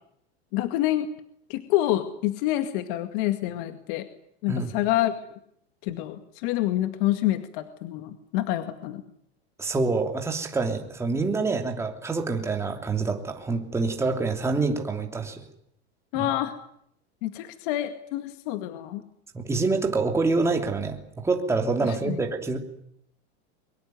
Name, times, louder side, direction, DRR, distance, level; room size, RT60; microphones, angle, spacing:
voice 1, 0.5-1.1 1.5-4.1 4.4-5.1 5.8-9.0 16.1-16.6 17.2-19.0 21.8-22.2, left 14 dB, 50° left, 9 dB, 2.1 m, -27 dB
voice 2, 9.6-15.4 16.1-16.3 19.3-22.6, right 3 dB, 10° right, 3 dB, 3.1 m, -26 dB
23.5 x 22.5 x 9.4 m, 0.70 s
supercardioid pair, 155°, 33 cm